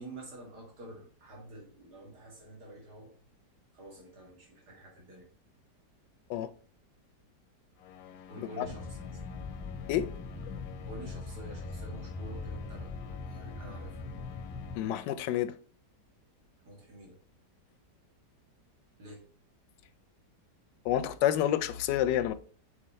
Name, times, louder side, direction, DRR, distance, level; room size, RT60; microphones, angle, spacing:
voice 1, 0.0-3.1 3.7-5.3 8.3-9.2 10.9-14.0 16.6-17.2 19.0-19.2, right 1 dB, 70° right, 2.6 m, -48 dB
sound 1, 7.8-15.0, left 10 dB, 70° left, 1.0 m, -50 dB
sound 2, 8.6-14.8, left 3 dB, 30° left, 0.3 m, -41 dB
voice 2, 14.8-15.5 20.8-22.3, left 11 dB, 85° left, 1.2 m, -29 dB
6.4 x 4.3 x 4.3 m
omnidirectional pair, 1.8 m